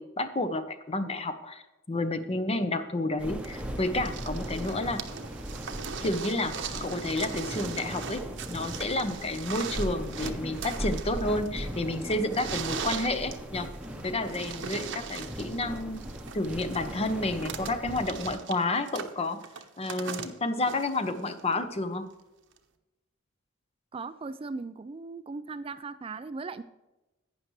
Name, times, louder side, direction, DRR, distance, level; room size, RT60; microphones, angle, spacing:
voice 1, 0.0-1.6 1.9-5.0 6.0-8.2 8.5-13.7 14.0-16.0 16.3-19.4 19.8-22.1, left 2 dB, 30° left, 10 dB, 0.8 m, -30 dB
sound 1, 3.2-18.3, equal, 5° right, 0.9 m, -38 dB
sound 2, 3.4-21.5 22.6-22.7, right 6 dB, 65° right, 0.9 m, -40 dB
voice 2, 23.9-26.6, right 4 dB, 30° right, 12 dB, 0.4 m, -38 dB
11.5 x 9.2 x 3.2 m, 1.0 s
head